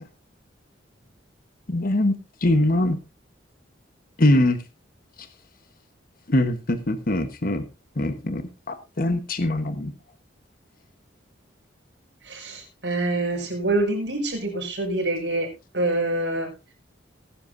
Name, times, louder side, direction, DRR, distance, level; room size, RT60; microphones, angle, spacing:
voice 1, 1.7-2.1 2.4-3.0 4.2-4.6 6.3-7.6 8.0-9.9, left 1 dB, 50° left, 9 dB, 1.2 m, -22 dB
voice 2, 12.2-16.5, right 2 dB, 70° right, 1 dB, 6.1 m, -26 dB
19.0 x 11.0 x 2.6 m, 0.26 s
head